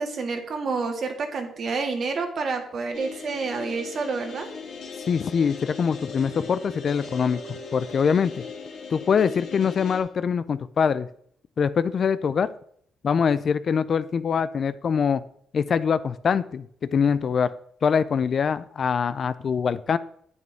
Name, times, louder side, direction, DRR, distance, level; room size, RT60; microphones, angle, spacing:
voice 1, 0.0-4.5, right 4 dB, 55° right, 5 dB, 1.8 m, -29 dB
sound 1, 2.9-10.0, left 4 dB, 75° left, 2.7 m, -39 dB
voice 2, 5.1-8.4 8.9-11.1 11.6-12.5 13.0-15.2 15.5-17.5 17.8-20.0, left 6 dB, 50° left, 14 dB, 0.5 m, -23 dB
9.4 x 8.2 x 3.5 m, 0.64 s
cardioid pair, 90°, 0 cm